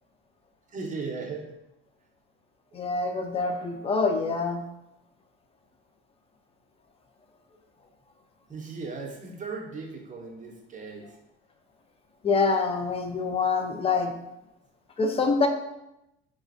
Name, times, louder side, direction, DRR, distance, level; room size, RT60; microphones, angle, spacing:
voice 1, 0.7-1.5 8.5-11.0, right 4 dB, 25° right, 0 dB, 0.7 m, -37 dB
voice 2, 2.7-4.6 12.2-14.1 15.0-15.5, left 4 dB, 20° left, 5 dB, 0.4 m, -25 dB
4.0 x 2.5 x 2.5 m, 0.88 s
supercardioid pair, 105°, 31 cm